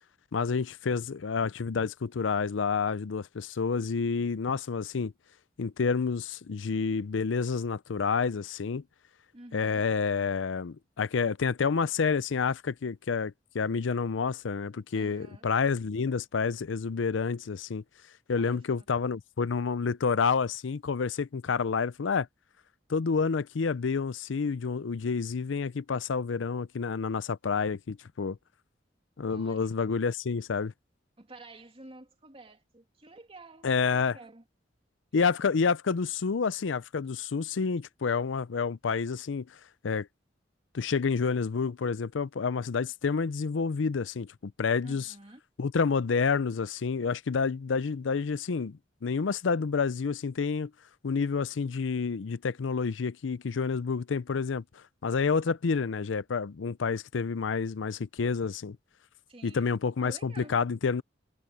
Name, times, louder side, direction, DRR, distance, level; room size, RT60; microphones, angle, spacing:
voice 1, 0.3-5.1 5.6-8.8 9.5-17.8 18.3-22.3 22.9-28.4 29.2-30.7 33.6-34.2 35.1-39.5 39.8-40.1 40.7-45.1 45.6-50.7 51.0-54.6 55.0-58.8 59.4-61.0, left 5 dB, 85° left, 0.5 m, -29 dB
voice 2, 9.3-9.8 14.9-15.4 18.4-18.9 29.3-29.7 31.2-34.4 44.8-45.4 59.3-59.7 60.0-60.6, right 2 dB, 30° right, 2.9 m, -50 dB
head